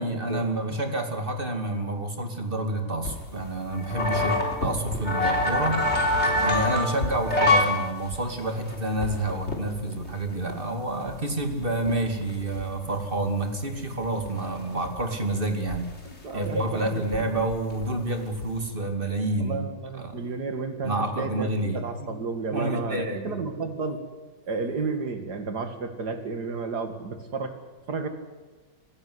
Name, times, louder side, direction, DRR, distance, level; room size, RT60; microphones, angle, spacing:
voice 1, 0.0-5.8 6.4-15.9 16.3-19.7 20.0-20.2 20.8-22.1 22.5-23.4, right 2 dB, 30° right, 5 dB, 2.7 m, -28 dB
sound 1, 3.0-7.7 8.1-8.2 8.7-10.1 10.5-10.6 11.1-11.2 11.4-12.9 13.4-13.5 13.7-14.3 14.8-15.0 15.7-15.8 16.1-17.2 17.5-17.8 18.1-18.6, left 2 dB, 35° left, 3.8 m, -25 dB
voice 2, 16.0-17.0 17.3-17.4 19.4-24.0 24.5-27.6 27.9-28.1, right 4 dB, 60° right, 7 dB, 2.7 m, -32 dB
27.0 x 16.0 x 9.7 m, 1.3 s
omnidirectional pair, 2.0 m